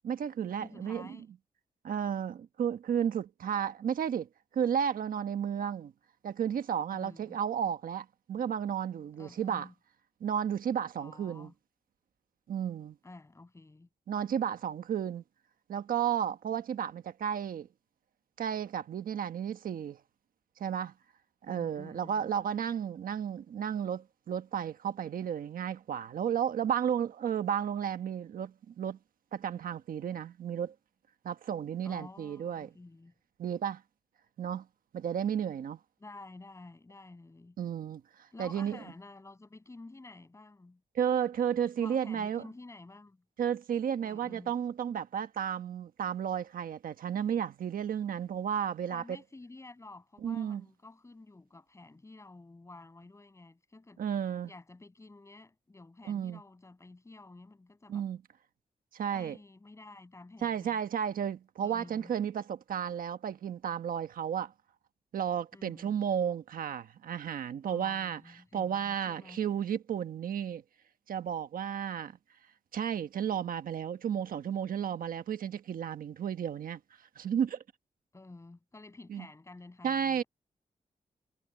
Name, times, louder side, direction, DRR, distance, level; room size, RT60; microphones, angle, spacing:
voice 1, 0.0-1.2 1.8-4.3 4.5-5.9 6.2-9.7 10.2-11.5 12.5-13.0 14.1-15.2 15.7-17.7 18.4-20.0 20.6-20.9 21.4-29.0 29.3-30.7 31.2-32.7 33.4-33.8 34.4-34.7 34.9-35.8 37.6-38.8 40.9-42.5 43.4-49.2 50.2-50.6 54.0-54.5 56.1-56.4 57.9-58.2 58.9-59.4 60.4-64.5 65.1-70.6 71.1-72.2 72.7-76.8 77.1-77.6 79.1-79.3 79.8-80.2, right 8 dB, 90° right, 1.2 m, -33 dB
voice 2, 0.6-1.3 6.9-7.4 9.2-9.7 10.9-11.5 13.0-13.9 21.5-22.3 31.8-33.1 36.0-37.6 38.3-40.8 41.8-43.2 44.0-44.5 48.9-54.0 54.4-58.0 59.1-60.8 61.6-62.1 65.5-66.0 67.7-69.4 78.1-80.3, left 2 dB, 20° left, 7.8 m, -51 dB
wide cardioid pair, 150°, 14 cm